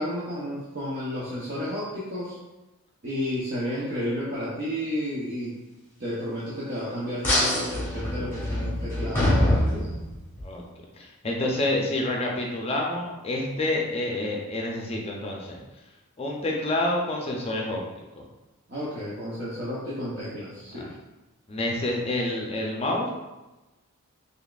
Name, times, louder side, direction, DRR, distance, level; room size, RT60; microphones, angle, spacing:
voice 1, 0.0-2.4 3.0-5.6 6.0-9.9 18.7-20.9, equal, 45° right, -8 dB, 0.7 m, -32 dB
sound 1, 7.2-10.4, left 1 dB, 10° left, 1.1 m, -25 dB
voice 2, 11.0-15.6 16.2-17.8 18.2-18.3 20.7-20.9 21.5-23.1, left 1 dB, 25° left, -1 dB, 0.5 m, -28 dB
4.0 x 3.3 x 2.4 m, 1.1 s
head